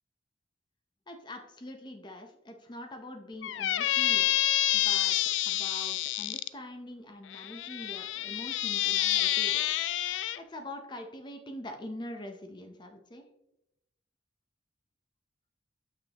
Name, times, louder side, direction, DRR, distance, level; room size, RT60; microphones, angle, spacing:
voice 1, 1.1-9.6 10.1-13.2, left 1 dB, 25° left, 5 dB, 0.7 m, -44 dB
Squeak, 3.4-6.5 7.3-10.4, left 13 dB, 85° left, 0.3 m, -28 dB
6.9 x 6.0 x 2.9 m, 0.84 s
head